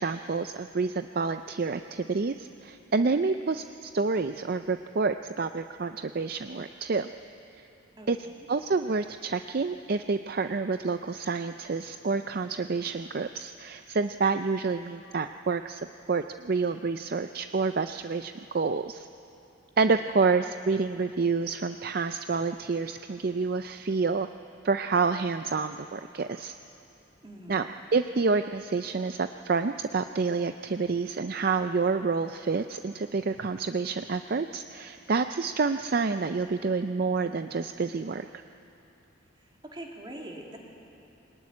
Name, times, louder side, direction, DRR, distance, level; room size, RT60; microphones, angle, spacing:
voice 1, 0.0-7.1 8.1-8.2 8.5-15.8 16.1-19.1 19.8-24.3 24.6-26.6 27.5-27.7 27.9-38.3, right 4 dB, 45° right, 9 dB, 0.4 m, -28 dB
voice 2, 8.0-8.5 19.8-20.1 27.2-27.7 39.4-40.6, right 1 dB, 20° right, -1 dB, 2.9 m, -44 dB
23.0 x 19.0 x 9.7 m, 2.8 s
head